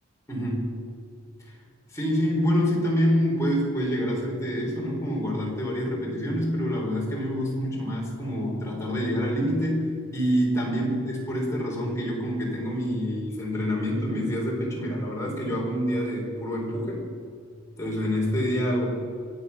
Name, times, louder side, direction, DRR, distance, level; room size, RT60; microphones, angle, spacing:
voice 1, 0.3-0.8 1.4-1.6 1.9-9.9 10.1-17.1 17.8-19.0, equal, 15° left, -3 dB, 4.4 m, -26 dB
24.5 x 8.7 x 6.1 m, 2.3 s
head